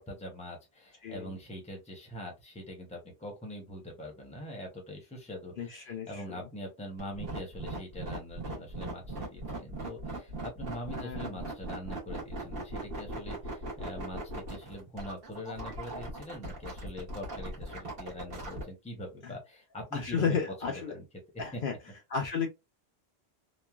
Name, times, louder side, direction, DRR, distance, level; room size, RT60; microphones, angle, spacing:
voice 1, 0.0-20.4 20.6-21.1 21.3-21.6, equal, 5° left, 0.7 m, -43 dB
voice 2, 5.6-6.4 10.9-11.4 19.2-19.3 19.9-20.9 21.4-21.7 22.1-22.5, left 6 dB, 60° left, 0.7 m, -33 dB
sound 1, 7.0-18.6, right 1 dB, 60° right, 1.2 m, -39 dB
3.0 x 2.2 x 2.3 m
omnidirectional pair, 1.1 m